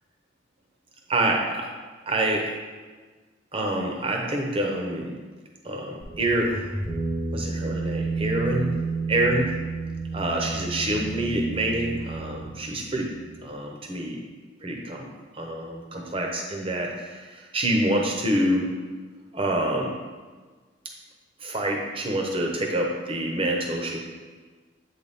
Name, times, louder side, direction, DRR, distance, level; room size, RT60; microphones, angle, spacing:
voice 1, 1.1-1.7 2.1-2.5 3.5-5.1 5.6-6.6 7.3-8.8 9.1-9.6 10.1-13.1 13.4-14.2 14.6-15.1 15.3-18.7 19.3-20.0 21.4-24.0, right 1 dB, 30° right, 1 dB, 0.8 m, -26 dB
sound 1, 6.0-13.4, right 3 dB, 10° left, 1.1 m, -31 dB
8.1 x 4.1 x 3.5 m, 1.4 s
head